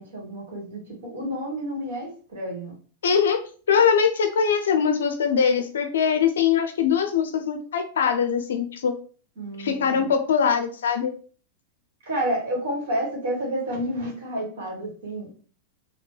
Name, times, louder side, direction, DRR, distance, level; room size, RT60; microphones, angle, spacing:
voice 1, 0.0-2.8 9.4-10.1 12.0-15.3, right 1 dB, 85° right, -3 dB, 1.4 m, -30 dB
voice 2, 3.0-3.4 3.7-8.9 9.6-11.1, left 7 dB, 85° left, 7 dB, 0.5 m, -22 dB
2.9 x 2.2 x 3.2 m, 0.40 s
hypercardioid pair, 120°, 0 cm